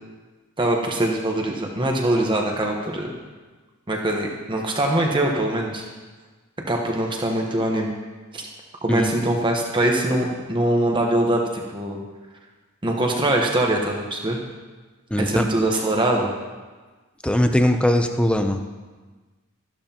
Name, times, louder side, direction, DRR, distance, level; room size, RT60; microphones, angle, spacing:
voice 1, 0.6-3.1 3.9-5.8 6.7-7.9 8.3-8.4 8.8-11.4 11.7-12.0 12.8-14.4 15.2-16.3, right 1 dB, 20° right, 0 dB, 1.1 m, -22 dB
voice 2, 15.1-15.5 17.2-18.6, left 1 dB, 5° left, 6 dB, 0.6 m, -20 dB
13.0 x 12.5 x 2.9 m, 1.3 s
head